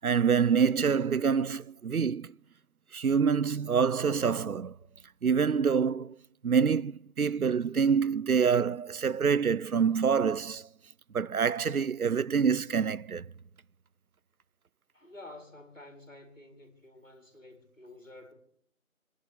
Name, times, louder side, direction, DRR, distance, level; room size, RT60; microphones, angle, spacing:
voice 1, 0.0-2.3 2.9-4.7 5.2-6.2 6.4-10.7 11.1-13.2, right 6 dB, 85° right, 0.6 m, -26 dB
voice 2, 14.9-18.3, left 2 dB, 65° left, 4.3 m, -50 dB
28.5 x 11.0 x 3.6 m
figure-of-eight pair, 180°, 42 cm